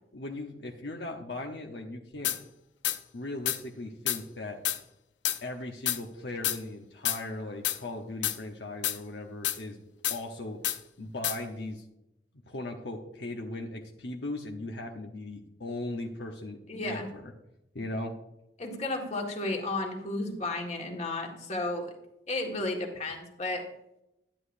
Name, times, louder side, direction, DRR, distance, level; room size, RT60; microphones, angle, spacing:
voice 1, 0.1-2.3 3.1-4.6 5.4-9.8 10.1-10.6 11.0-11.8 12.5-17.3 17.7-18.2, left 2 dB, 70° left, 1 dB, 1.0 m, -38 dB
sound 1, 2.2-2.4 2.8-3.0 3.5-3.6 4.1-4.2 4.6-4.8 5.2-5.4 5.9-6.0 6.4-6.6 7.1-7.2 7.6-7.8 8.2-8.4 8.8-9.0 9.4-9.6 10.0-10.2 10.6-10.8 11.2-11.4, left 12 dB, 90° left, 0.7 m, -28 dB
voice 2, 16.7-17.1 18.6-21.9 22.3-23.6, left 2 dB, 40° left, 1 dB, 1.8 m, -33 dB
12.0 x 10.5 x 2.6 m, 0.85 s
head